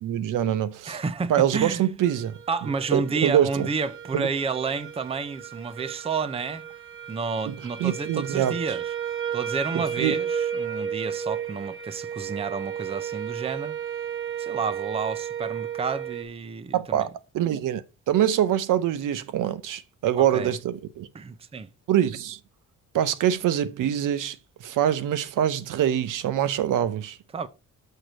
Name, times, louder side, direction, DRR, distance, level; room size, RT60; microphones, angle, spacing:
voice 1, 0.0-1.0 1.3-2.4 2.9-3.7 4.1-4.3 7.5-8.5 10.0-10.2 16.7-17.1 17.3-21.1 21.9-22.4 22.9-24.4 24.6-27.2, right 10 dB, 75° right, 0.8 m, -24 dB
voice 2, 0.9-1.8 2.5-6.6 7.1-8.8 9.3-13.7 14.4-17.1 20.1-20.5 21.1-21.7 27.3-27.5, right 5 dB, 20° right, 0.5 m, -30 dB
sound 1, 2.0-16.2, right 8 dB, 40° right, 1.1 m, -33 dB
6.5 x 4.5 x 6.2 m
cardioid pair, 135°, 32 cm